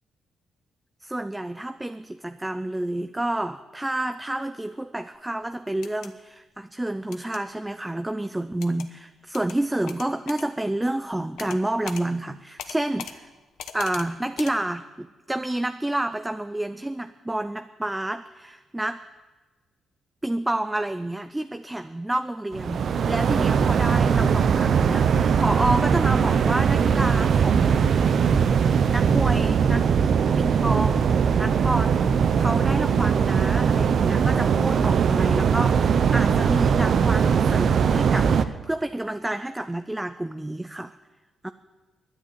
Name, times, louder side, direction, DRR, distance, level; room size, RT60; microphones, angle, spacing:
voice 1, 1.0-13.3 13.7-19.0 20.2-28.2 28.9-29.9 30.4-41.0 41.4-41.5, right 1 dB, 10° right, 10 dB, 0.4 m, -29 dB
sound 1, 5.7-6.1 7.1-7.4 8.6-8.9 9.3-9.6 9.9-10.5 11.4-11.6 11.9-12.0 12.6-13.1 13.6-14.1 14.4-14.5, left 9 dB, 85° left, 0.9 m, -39 dB
sound 2, 22.5-38.4, right 7 dB, 60° right, 0.7 m, -20 dB
11.0 x 9.9 x 8.8 m, 1.2 s
cardioid pair, 100°, 0 cm